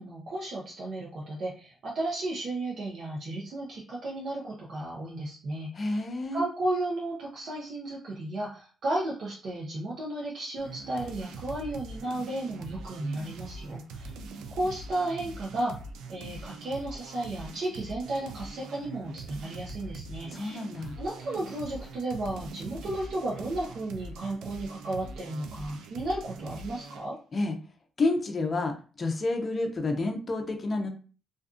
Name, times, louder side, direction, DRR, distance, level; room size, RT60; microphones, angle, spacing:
voice 1, 0.0-6.0 6.3-14.1 14.6-15.8 16.1-20.6 21.0-27.2, right 1 dB, 60° right, -4 dB, 0.7 m, -34 dB
voice 2, 5.7-6.4 20.3-21.0 27.3-27.6 28.0-30.9, left 2 dB, 35° left, 4 dB, 0.5 m, -29 dB
sound 1, 10.6-27.1, right 3 dB, 90° right, 0.3 m, -43 dB
2.5 x 2.3 x 2.4 m, 0.37 s
cardioid pair, 90°, 0 cm